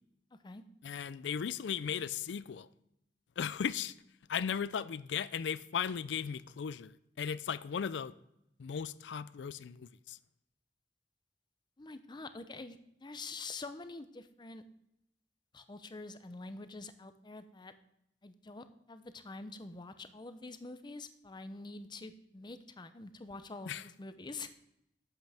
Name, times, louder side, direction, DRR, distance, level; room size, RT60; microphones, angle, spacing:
voice 1, 0.8-2.7 3.4-3.9 4.3-8.1 8.6-10.2 23.7-23.8, left 7 dB, 80° left, 0.4 m, -36 dB
voice 2, 11.8-14.6 15.5-17.7 18.2-24.5, left 3 dB, 25° left, 0.6 m, -46 dB
11.5 x 7.9 x 3.4 m
head